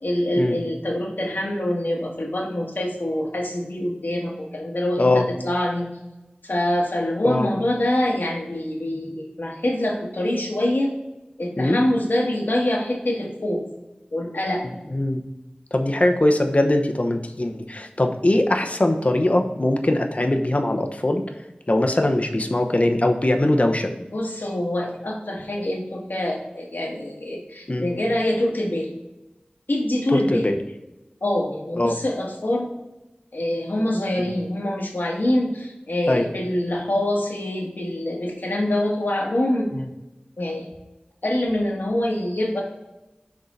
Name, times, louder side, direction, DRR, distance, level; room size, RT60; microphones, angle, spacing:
voice 1, 0.0-5.9 6.4-10.9 11.4-13.6 14.1-14.6 24.1-28.9 29.7-30.5 31.2-32.7 33.3-39.7 40.4-40.7 41.2-42.6, left 1 dB, 80° left, -1 dB, 1.4 m, -25 dB
voice 2, 14.6-15.2 15.7-21.2 21.7-23.9 27.7-27.9 30.1-30.6 31.8-32.0 36.1-36.3 39.7-39.8, left 1 dB, 45° left, 4 dB, 0.8 m, -21 dB
6.5 x 3.7 x 4.0 m, 1.0 s
wide cardioid pair, 45°, 3 cm